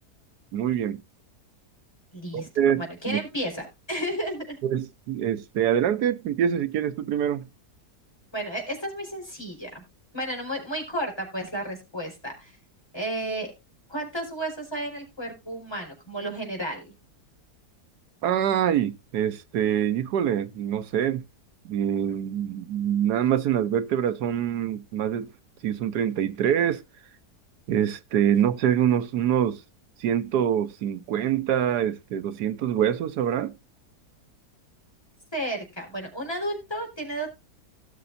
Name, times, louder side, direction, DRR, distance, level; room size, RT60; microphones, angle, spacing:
voice 1, 0.5-1.0 2.3-3.2 4.6-7.5 18.2-21.2 21.6-25.3 25.6-26.8 27.7-29.6 30.0-33.5, right 9 dB, 85° right, 1.3 m, -25 dB
voice 2, 2.1-2.5 2.7-4.6 8.3-9.8 10.1-12.6 12.9-13.5 13.9-16.9 35.3-37.3, right 1 dB, 15° left, 4.7 m, -32 dB
18.0 x 6.8 x 2.6 m
omnidirectional pair, 1.7 m